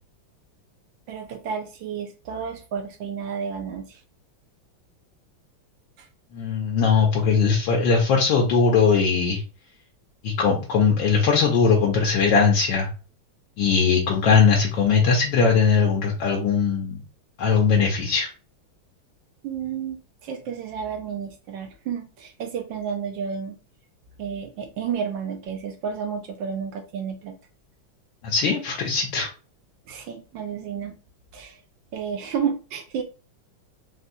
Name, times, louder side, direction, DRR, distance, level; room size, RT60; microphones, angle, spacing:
voice 1, 1.1-3.9 19.4-23.5 24.2-27.3 29.9-30.9 31.3-31.5 31.9-33.0, right 7 dB, 75° right, 4 dB, 1.1 m, -31 dB
voice 2, 6.3-9.4 10.2-12.9 13.6-17.0 17.4-18.3 28.2-29.3, left 5 dB, 75° left, -1 dB, 1.3 m, -20 dB
4.2 x 2.3 x 2.6 m, 0.34 s
omnidirectional pair, 2.3 m